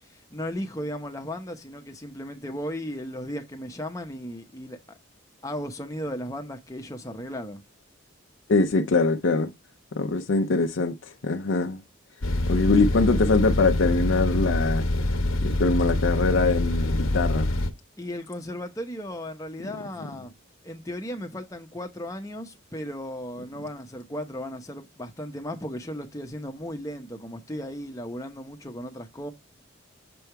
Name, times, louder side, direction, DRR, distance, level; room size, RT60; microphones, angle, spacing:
voice 1, 0.0-4.8 5.4-7.6 18.0-20.3 20.6-29.3, equal, 15° left, 0.8 m, -36 dB
voice 2, 8.5-9.5 10.0-10.9 11.2-11.8 12.5-14.8 15.4-17.5, left 3 dB, 65° left, 0.5 m, -23 dB
sound 1, 12.2-17.7, left 1 dB, 85° left, 0.9 m, -25 dB
6.9 x 3.4 x 4.5 m
head